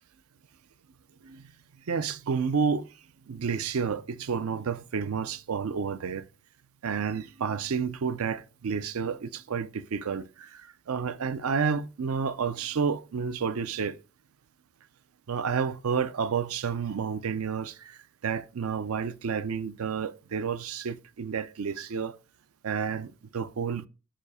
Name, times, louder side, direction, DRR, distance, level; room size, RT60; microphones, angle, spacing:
voice 1, 1.9-2.9 3.3-6.2 6.8-14.0 15.3-18.0 18.2-22.2 22.6-23.9, right 6 dB, 70° right, 0.5 m, -30 dB
5.0 x 4.9 x 4.8 m
head